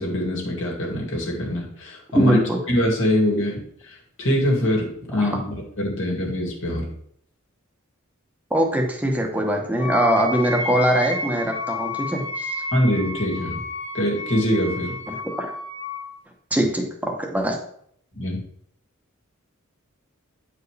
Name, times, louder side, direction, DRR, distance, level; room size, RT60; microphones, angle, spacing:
voice 1, 0.0-2.4 2.7-6.9 12.7-13.6 13.9-15.0 18.1-18.4, left 1 dB, 65° left, -1 dB, 2.2 m, -24 dB
voice 2, 2.1-2.6 5.2-5.3 8.5-12.5 15.1-15.5 16.5-17.6, right 1 dB, 5° right, 1 dB, 1.0 m, -22 dB
Wind instrument woodwind instrument, 9.8-16.1, left 2 dB, 30° left, 1.8 m, -31 dB
9.1 x 4.7 x 3.3 m, 0.66 s
head